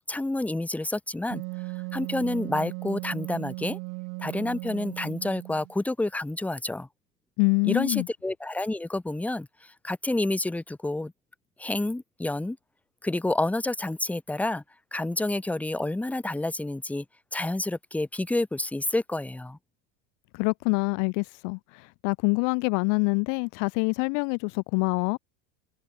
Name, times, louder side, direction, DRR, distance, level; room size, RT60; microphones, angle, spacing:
voice 1, 0.0-1.4 1.9-3.8 4.2-6.9 7.6-11.1 11.6-12.6 13.0-14.6 14.9-17.0 17.3-19.6, left 2 dB, 5° left, 1.2 m, -29 dB
Wind instrument woodwind instrument, 1.3-5.7, right 40 dB or more, 55° right, 1.1 m, -37 dB
voice 2, 7.4-8.1 20.3-25.2, left 40 dB or more, 50° left, 0.6 m, -26 dB
supercardioid pair, 155°, 39 cm